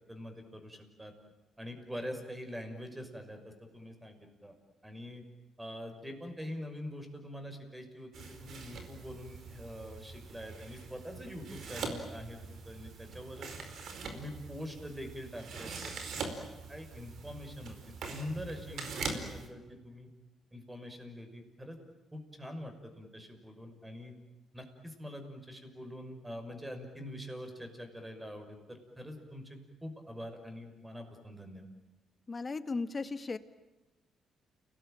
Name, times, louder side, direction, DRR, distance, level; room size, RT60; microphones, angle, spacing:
voice 1, 0.1-1.1 1.6-4.5 4.8-5.2 5.6-13.5 14.1-15.9 16.7-17.8 18.1-20.1 20.5-21.8 22.1-24.1 24.5-31.6, equal, 10° right, 5 dB, 6.1 m, -44 dB
sound 1, 8.1-19.5, right 4 dB, 65° right, 4.8 m, -43 dB
voice 2, 32.3-33.4, left 3 dB, 30° left, 11 dB, 1.7 m, -36 dB
30.0 x 20.0 x 9.2 m, 1.1 s
cardioid pair, 90°, 0 cm